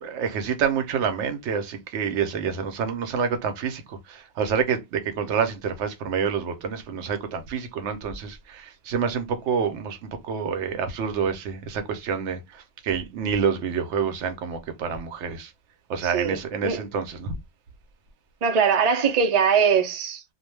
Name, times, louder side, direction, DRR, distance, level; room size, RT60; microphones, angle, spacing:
voice 1, 0.0-15.5 15.9-17.3, right 6 dB, 85° right, 0.9 m, -28 dB
voice 2, 16.0-16.8 18.4-20.2, right 6 dB, 45° right, 0.5 m, -22 dB
2.3 x 2.2 x 3.1 m
omnidirectional pair, 1.2 m